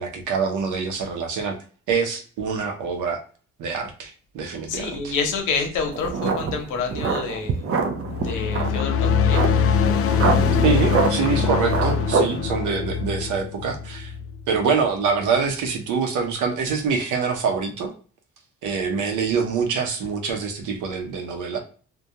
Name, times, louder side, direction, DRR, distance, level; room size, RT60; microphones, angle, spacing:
voice 1, 0.0-1.6 1.9-3.2 3.6-5.1 10.6-14.1 14.5-17.9 18.6-21.6, right 5 dB, 80° right, 5 dB, 0.8 m, -25 dB
voice 2, 4.7-7.6 8.1-9.4, left 5 dB, 80° left, 4 dB, 0.8 m, -28 dB
sound 1, 5.9-12.4, right 4 dB, 50° right, 0.5 m, -25 dB
sound 2, 7.9-14.6, left 6 dB, 50° left, 0.4 m, -23 dB
2.3 x 2.2 x 2.8 m, 0.41 s
cardioid pair, 90°, 30 cm